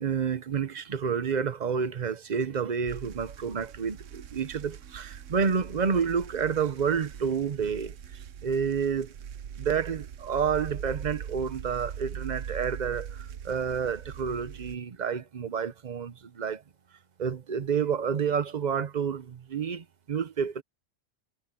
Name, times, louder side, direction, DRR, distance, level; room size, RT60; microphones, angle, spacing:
voice 1, 0.0-9.1 9.6-16.6 17.2-20.6, right 6 dB, 40° right, 0.8 m, -29 dB
sound 1, 2.9-14.8, right 8 dB, 65° right, 1.1 m, -42 dB
omnidirectional pair, 1.4 m